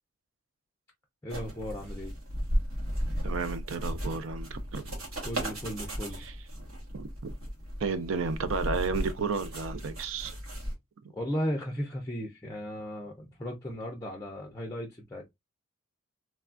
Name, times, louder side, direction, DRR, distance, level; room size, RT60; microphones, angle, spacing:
voice 1, 1.2-2.1 5.2-6.3 11.1-15.3, equal, 15° left, 0.5 m, -36 dB
sound 1, 1.3-10.7, equal, 85° right, 1.3 m, -35 dB
voice 2, 3.2-5.0 6.2-6.3 6.9-7.3 7.8-10.4 11.0-11.1, right 4 dB, 65° right, 0.4 m, -32 dB
3.2 x 2.3 x 2.4 m
head